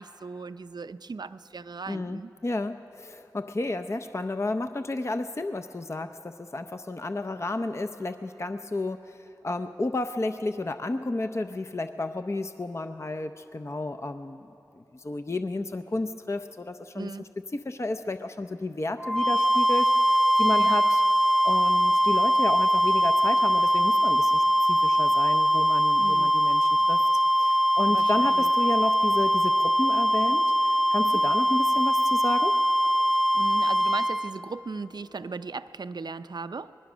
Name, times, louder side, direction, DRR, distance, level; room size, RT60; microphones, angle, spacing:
voice 1, 0.0-2.3 16.9-17.3 20.5-20.8 26.0-26.3 27.9-28.5 31.0-31.2 33.3-36.7, right 4 dB, 65° right, 12 dB, 0.5 m, -37 dB
voice 2, 1.9-14.5 14.7-21.0 21.4-27.0 27.4-32.5, left 2 dB, 35° left, 8 dB, 0.6 m, -32 dB
sound 1, 19.0-34.3, equal, 5° left, 0.8 m, -22 dB
25.5 x 20.5 x 6.2 m, 3.0 s
wide cardioid pair, 65°, 8 cm